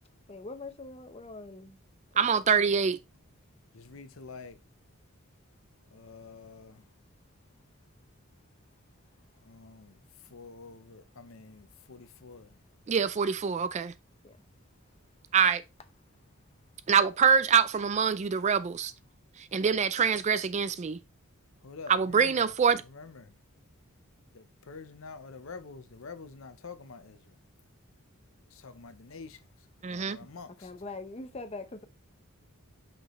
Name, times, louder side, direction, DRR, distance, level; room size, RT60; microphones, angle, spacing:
voice 1, 0.3-1.8 14.2-14.4 30.6-31.8, left 3 dB, 30° left, 0.7 m, -42 dB
voice 2, 2.2-3.0 12.9-13.9 15.3-15.6 16.9-18.9 19.4-21.0 21.9-22.8 29.8-30.2, right 6 dB, 30° right, 0.3 m, -25 dB
voice 3, 3.7-4.6 5.9-6.8 9.4-10.0 10.3-12.6 21.6-22.5 22.9-23.3 24.3-27.4 28.5-29.4 29.9-30.7, left 4 dB, 65° left, 0.7 m, -47 dB
6.0 x 5.3 x 3.1 m
head